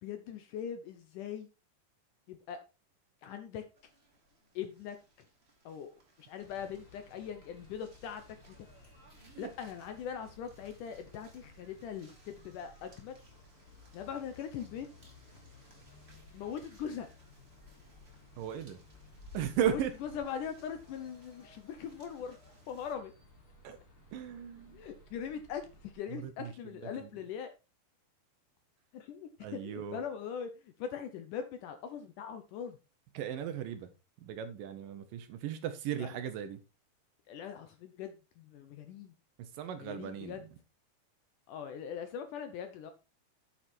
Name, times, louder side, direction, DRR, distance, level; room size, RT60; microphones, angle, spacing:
voice 1, 0.0-1.5 2.3-2.6 3.2-3.6 4.6-5.0 5.7-5.9 6.2-8.5 9.4-13.2 13.9-14.9 16.3-17.1 19.7-22.4 22.7-23.1 24.7-27.5 28.9-32.8 36.0-36.2 37.3-39.2 39.8-40.4 41.5-42.9, left 8 dB, 75° left, 8 dB, 2.0 m, -41 dB
sound 1, 3.7-23.0, left 2 dB, 20° right, 2.1 m, -60 dB
sound 2, 6.4-25.9, left 2 dB, 35° left, 3.6 m, -59 dB
voice 2, 18.4-18.8 19.3-19.9 23.6-23.8 24.1-24.8 26.1-26.5 27.0-27.1 29.4-30.0 33.1-33.9 34.2-36.6 39.4-40.5, right 9 dB, 75° right, 10 dB, 2.3 m, -36 dB
8.9 x 7.1 x 4.3 m, 0.29 s
omnidirectional pair, 4.4 m